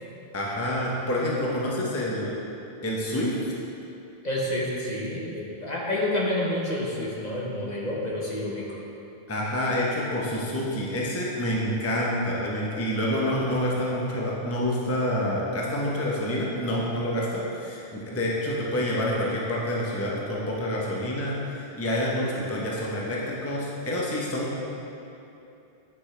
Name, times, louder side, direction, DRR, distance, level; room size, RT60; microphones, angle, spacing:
voice 1, 0.3-2.3 2.8-3.3 9.3-24.6, left 1 dB, 15° left, -4 dB, 0.8 m, -27 dB
voice 2, 4.2-8.8, left 1 dB, 40° left, -4 dB, 1.0 m, -29 dB
9.5 x 5.9 x 3.3 m, 2.8 s
omnidirectional pair, 1.2 m